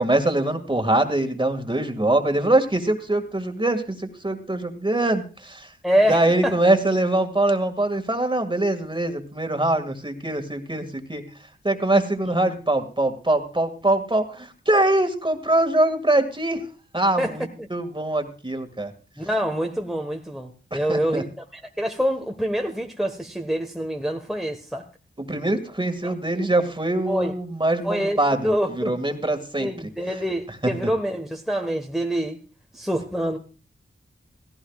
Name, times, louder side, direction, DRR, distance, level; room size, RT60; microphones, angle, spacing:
voice 1, 0.0-5.7 6.1-11.2 11.6-16.6 16.9-18.9 20.7-21.2 25.2-29.9, right 1 dB, 25° right, 6 dB, 2.0 m, -23 dB
voice 2, 5.8-6.6 17.2-17.7 19.2-24.9 26.0-26.1 27.1-27.3 27.8-28.9 29.6-32.4 32.7-33.4, equal, ahead, 3 dB, 1.3 m, -26 dB
16.5 x 15.5 x 2.4 m, 0.36 s
cardioid pair, 50°, 21 cm